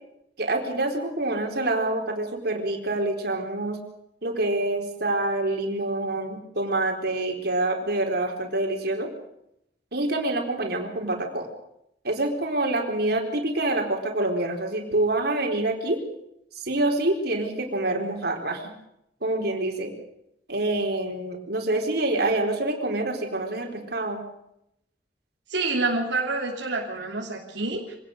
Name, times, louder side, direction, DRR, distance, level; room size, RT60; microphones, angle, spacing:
voice 1, 0.4-3.8 4.2-9.1 9.9-11.5 12.0-16.0 16.5-18.7 19.2-19.9 20.5-24.2, right 2 dB, 65° right, 2 dB, 4.3 m, -26 dB
voice 2, 25.5-27.9, right 3 dB, 85° right, -1 dB, 3.1 m, -27 dB
25.0 x 18.0 x 6.7 m, 0.79 s
head